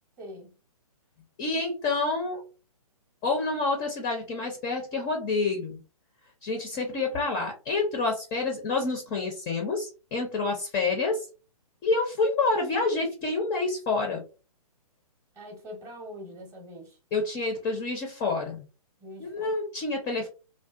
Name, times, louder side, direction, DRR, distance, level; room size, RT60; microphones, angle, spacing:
voice 1, 0.2-0.5 15.3-17.0 19.0-19.5, equal, 15° right, 0.7 m, -43 dB
voice 2, 1.4-2.4 3.2-5.8 6.4-11.3 11.8-14.2 17.1-18.6 19.2-20.3, left 3 dB, 20° left, 0.4 m, -28 dB
2.6 x 2.2 x 2.3 m
figure-of-eight pair, 130°, 19 cm